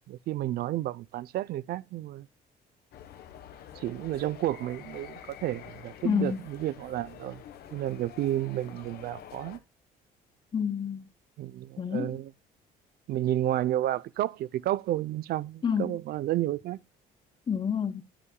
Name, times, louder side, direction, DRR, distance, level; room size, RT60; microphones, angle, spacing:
voice 1, 0.1-2.3 3.8-7.4 7.7-9.6 11.4-12.3 13.1-16.8, right 13 dB, 65° right, 0.6 m, -31 dB
sound 1, 2.9-9.6, left 10 dB, 70° left, 1.2 m, -48 dB
voice 2, 6.0-6.4 10.5-11.1 11.8-12.2 15.6-15.9 17.5-18.0, left 7 dB, 30° left, 0.7 m, -28 dB
10.5 x 9.9 x 2.2 m
cardioid pair, 110°, 17 cm